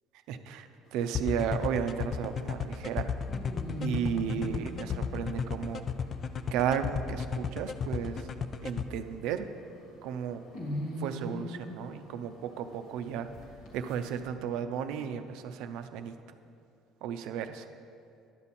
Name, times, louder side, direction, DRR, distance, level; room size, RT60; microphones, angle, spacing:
voice 1, 0.3-3.1 3.8-5.8 6.5-8.3 8.6-9.5 10.0-10.4 11.0-13.3 13.7-16.2 17.0-17.7, right 8 dB, 80° right, 9 dB, 0.5 m, -34 dB
sound 1, 0.8-14.3, left 1 dB, 75° left, 2.4 m, -43 dB
sound 2, 1.1-8.8, left 6 dB, 40° left, 0.4 m, -33 dB
10.5 x 7.2 x 4.2 m, 2.6 s
cardioid pair, 110°, 0 cm